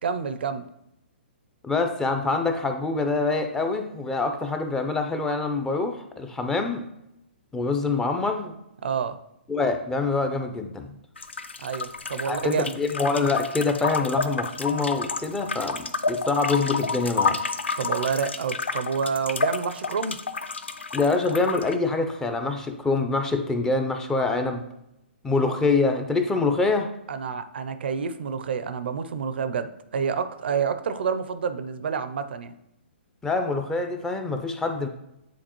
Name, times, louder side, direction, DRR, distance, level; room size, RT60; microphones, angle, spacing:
voice 1, 0.0-0.7 8.8-9.2 11.6-12.7 17.8-20.2 27.1-32.5, right 6 dB, 65° right, 11 dB, 0.6 m, -28 dB
voice 2, 1.6-6.9 7.5-8.6 9.5-10.9 12.3-17.4 20.9-24.7 25.2-26.9 33.2-34.9, left 3 dB, 10° left, 6 dB, 0.5 m, -25 dB
sound 1, 11.2-21.8, left 4 dB, 90° left, 0.4 m, -30 dB
9.2 x 4.0 x 3.0 m, 0.84 s
hypercardioid pair, 130°, 6 cm